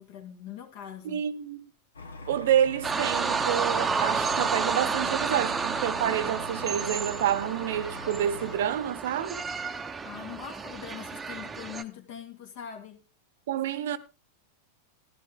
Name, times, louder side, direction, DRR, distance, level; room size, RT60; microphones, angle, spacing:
voice 1, 0.0-1.2 10.0-13.0, left 9 dB, 50° left, 2.3 m, -42 dB
voice 2, 1.0-1.7 2.3-9.4 13.5-14.0, right 10 dB, 55° right, 0.9 m, -28 dB
sound 1, 1.9-8.6, left 3 dB, 70° left, 1.4 m, -43 dB
sound 2, 2.8-11.8, right 5 dB, 15° right, 0.9 m, -31 dB
15.0 x 11.5 x 3.7 m
figure-of-eight pair, 90°, 0 cm